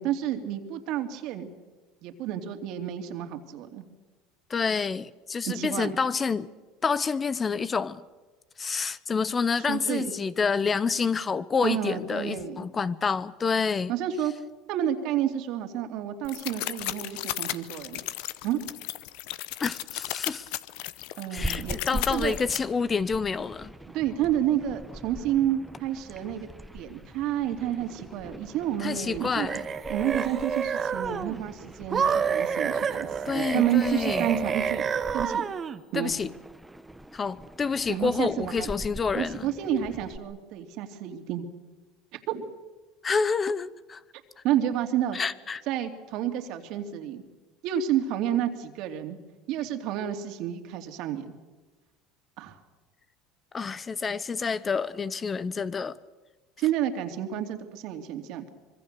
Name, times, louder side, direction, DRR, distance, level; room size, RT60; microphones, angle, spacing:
voice 1, 0.0-1.5 2.0-3.8 5.5-5.9 9.5-10.1 11.6-12.7 13.9-14.3 14.7-18.0 18.4-18.6 21.2-22.4 23.9-26.5 26.7-29.5 29.9-34.8 35.1-35.4 35.9-36.2 37.9-38.7 39.1-41.5 42.1-42.5 44.4-45.2 45.7-47.2 47.6-49.2 49.5-51.3 52.4-52.6 56.6-58.4, right 11 dB, 65° right, 2.8 m, -30 dB
voice 2, 4.5-6.5 6.8-8.0 8.6-13.9 19.6-20.5 21.3-23.7 28.8-29.6 33.2-34.3 35.9-36.3 37.1-39.5 43.0-44.0 45.1-45.6 53.5-56.0, left 5 dB, 25° left, 0.8 m, -28 dB
sound 1, 16.2-22.6, left 17 dB, 75° left, 0.9 m, -35 dB
sound 2, 21.4-35.2 36.1-40.2, equal, 5° right, 1.3 m, -42 dB
sound 3, 29.2-31.4 31.9-35.8, right 6 dB, 30° right, 1.3 m, -29 dB
25.0 x 23.0 x 6.9 m
supercardioid pair, 100°, 0 cm